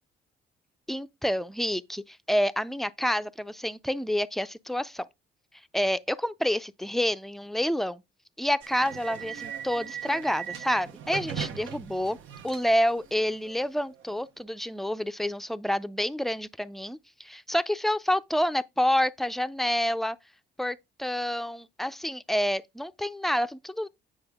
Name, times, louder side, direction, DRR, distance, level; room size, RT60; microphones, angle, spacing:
voice 1, 0.9-5.1 5.7-8.0 8.4-12.2 12.4-20.2 20.6-23.9, equal, ahead, 0.5 m, -28 dB
sound 1, 8.6-14.2, right 9 dB, 80° right, 0.9 m, -39 dB
8.8 x 5.0 x 3.5 m
cardioid pair, 90°, 20 cm